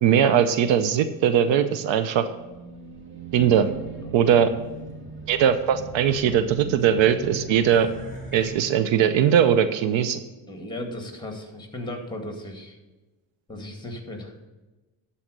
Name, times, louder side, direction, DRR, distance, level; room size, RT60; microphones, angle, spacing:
voice 1, 0.0-2.3 3.3-3.7 4.1-4.5 5.3-7.9 8.3-10.2, right 8 dB, 65° right, 11 dB, 0.7 m, -20 dB
Race car auto racing / Alarm, 2.3-8.5, right 3 dB, 25° right, 2.4 m, -39 dB
voice 2, 10.5-12.8 13.5-14.4, left 1 dB, 10° left, 3 dB, 2.0 m, -36 dB
12.0 x 4.3 x 6.6 m, 1.1 s
cardioid pair, 90°, 48 cm